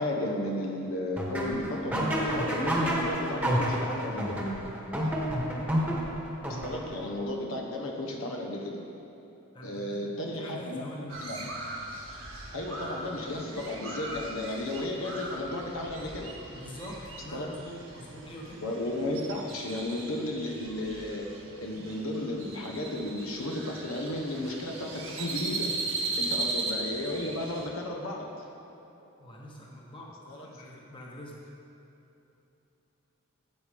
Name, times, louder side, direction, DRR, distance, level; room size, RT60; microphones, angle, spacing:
voice 1, 0.0-4.4 6.6-8.8 9.6-10.8 11.2-11.4 12.5-16.3 17.3-17.5 18.6-21.3 21.6-25.7 26.2-28.3 30.3-30.5, left 1 dB, 75° left, 0 dB, 1.1 m, -33 dB
sound 1, 1.2-7.1, equal, 5° right, 1.2 m, -30 dB
voice 2, 9.5-9.8 10.3-11.2 16.5-18.6 26.4-26.5 29.2-31.4, equal, 25° left, -3 dB, 1.1 m, -44 dB
Crow, 11.1-27.7, right 3 dB, 80° right, 1.6 m, -38 dB
12.5 x 8.3 x 3.5 m, 3.0 s
head